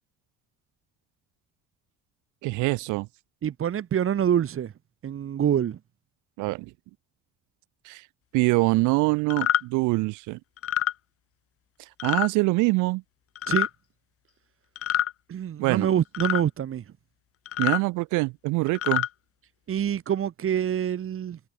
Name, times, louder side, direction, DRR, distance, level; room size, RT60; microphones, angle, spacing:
voice 1, 2.4-3.1 6.4-6.7 7.8-8.0 8.3-10.4 12.0-13.0 15.6-15.9 17.6-19.0, right 23 dB, 90° right, 1.6 m, -24 dB
voice 2, 3.4-4.7 5.0-5.8 13.5-13.7 15.3-16.8 19.7-21.4, right 9 dB, 45° right, 3.7 m, -26 dB
sound 1, 9.3-9.6 10.6-10.9 12.0-12.3 13.3-13.7 14.8-15.1 16.1-16.4 17.5-17.8 18.7-19.1, left 12 dB, 50° left, 1.1 m, -26 dB
cardioid pair, 115°, 29 cm